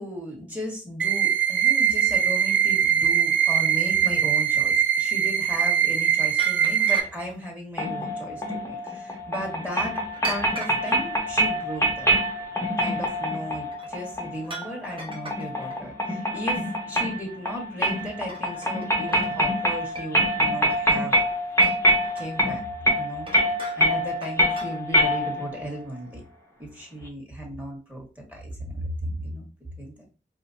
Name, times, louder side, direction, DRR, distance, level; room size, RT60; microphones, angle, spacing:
voice 1, 0.0-10.0 10.2-12.1 12.8-21.2 22.1-22.6 23.0-23.3 23.8-26.2 26.6-29.5 29.8-29.9, equal, 10° right, -1 dB, 1.6 m, -36 dB
sound 1, 1.0-7.0, right 8 dB, 75° right, 0.5 m, -22 dB
sound 2, 6.4-7.5 10.0-11.0 13.7-13.9 14.4-15.8 17.8-18.0 18.3-19.4 19.9-20.4 20.7-21.3 21.6-22.3 23.3-23.9 24.2-24.7, right 2 dB, 25° right, 0.9 m, -38 dB
sound 3, 7.8-25.6, equal, 15° left, 0.9 m, -25 dB
4.9 x 2.1 x 2.7 m, 0.34 s
wide cardioid pair, 65°, 19 cm